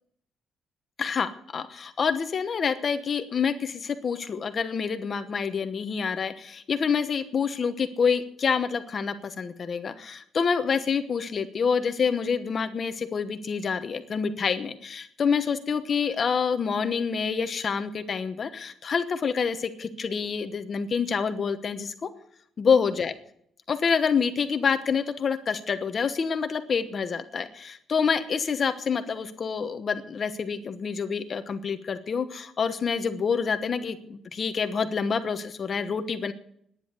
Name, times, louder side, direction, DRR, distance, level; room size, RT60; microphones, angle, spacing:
voice 1, 1.0-22.1 22.6-23.1 23.7-36.3, left 6 dB, 40° left, 9 dB, 1.1 m, -27 dB
12.0 x 10.0 x 8.3 m, 0.69 s
cardioid pair, 155°, 0 cm